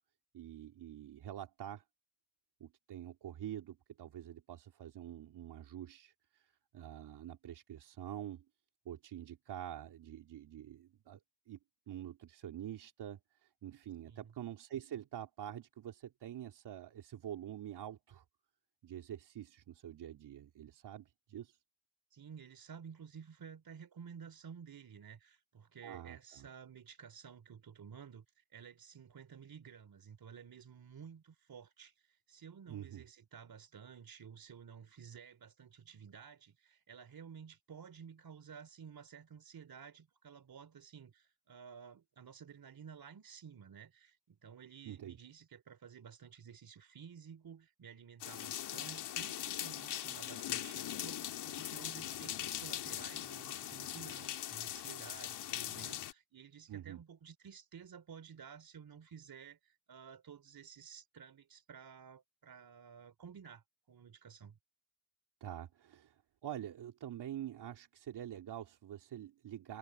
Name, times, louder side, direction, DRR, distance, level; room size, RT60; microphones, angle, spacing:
voice 1, 0.3-1.8 2.6-8.4 8.8-11.2 11.5-11.6 11.9-18.2 18.8-21.6 25.8-26.5 32.7-33.0 44.8-45.2 56.7-57.0 65.4-69.8, right 11 dB, 80° right, 3.5 m, -46 dB
voice 2, 22.1-64.6, right 7 dB, 60° right, 3.4 m, -53 dB
sound 1, 48.2-56.1, left 11 dB, 80° left, 2.9 m, -41 dB
supercardioid pair, 55°, 40 cm